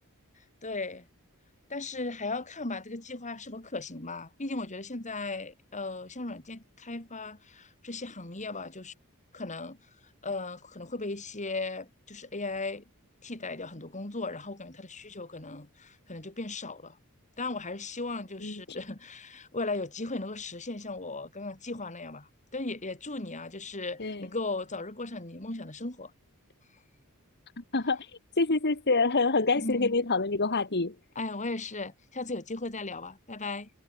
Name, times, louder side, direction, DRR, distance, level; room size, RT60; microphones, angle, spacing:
voice 1, 0.6-1.1 1.7-8.9 9.3-9.8 10.2-12.8 13.2-17.0 17.4-26.1 29.6-29.9 31.1-33.7, left 3 dB, 35° left, 3.5 m, -37 dB
voice 2, 27.6-28.1 28.4-30.9, left 3 dB, 50° left, 2.1 m, -26 dB
head